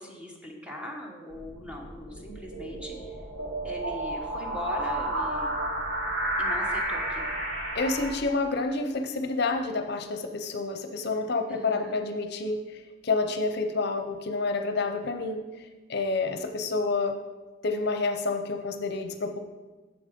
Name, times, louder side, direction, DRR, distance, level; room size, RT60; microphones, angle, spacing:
voice 1, 0.0-3.2 3.6-5.6 6.4-7.4 11.5-12.0, left 1 dB, 5° right, 0 dB, 1.1 m, -41 dB
sound 1, 1.3-8.1, right 1 dB, 90° right, 2.4 m, -31 dB
voice 2, 7.7-15.4 15.9-17.1 17.6-19.4, left 3 dB, 60° left, 6 dB, 0.6 m, -29 dB
7.3 x 7.0 x 5.1 m, 1.3 s
head